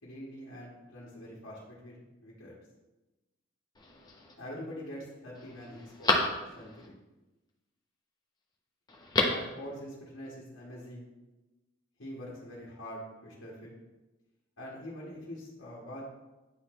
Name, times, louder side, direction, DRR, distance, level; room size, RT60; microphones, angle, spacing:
voice 1, 0.0-2.5 4.4-6.2 6.5-7.0 9.3-11.1 12.0-13.7 14.6-16.0, equal, 75° left, -7 dB, 1.6 m, -44 dB
Telephone, 3.7-4.3 4.9-5.0 5.3-6.9 8.9-9.5 9.8-9.9, left 2 dB, 20° left, 0.8 m, -31 dB
9.3 x 4.0 x 3.2 m, 1.1 s
head